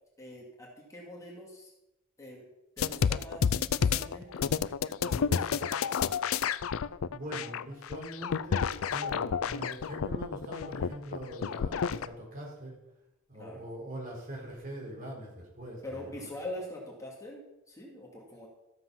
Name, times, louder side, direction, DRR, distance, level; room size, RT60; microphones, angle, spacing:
voice 1, 0.2-1.7 2.2-2.5 2.8-4.5 4.9-6.4 13.3-13.6 15.8-18.5, left 1 dB, 15° left, -2 dB, 2.3 m, -44 dB
sound 1, 2.8-12.1, left 6 dB, 80° left, 0.4 m, -30 dB
voice 2, 7.1-12.8 13.3-16.3, right 1 dB, 45° right, -3 dB, 4.7 m, -42 dB
14.0 x 7.5 x 5.8 m, 0.94 s
head